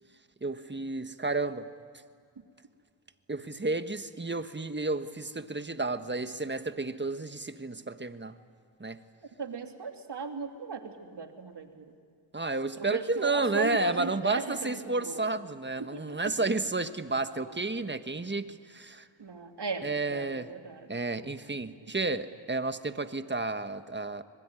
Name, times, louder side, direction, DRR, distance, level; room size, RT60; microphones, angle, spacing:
voice 1, 0.4-1.7 3.3-8.3 8.8-9.0 12.3-19.1 19.8-20.5 20.9-24.2, right 3 dB, 20° right, 10 dB, 1.4 m, -31 dB
voice 2, 9.4-11.9 12.8-15.3 15.8-16.3 17.3-17.8 19.2-19.8 20.1-20.9 21.8-21.9, right 4 dB, 55° right, 4 dB, 3.0 m, -37 dB
25.0 x 22.0 x 9.9 m, 2.2 s
cardioid pair, 50°, 48 cm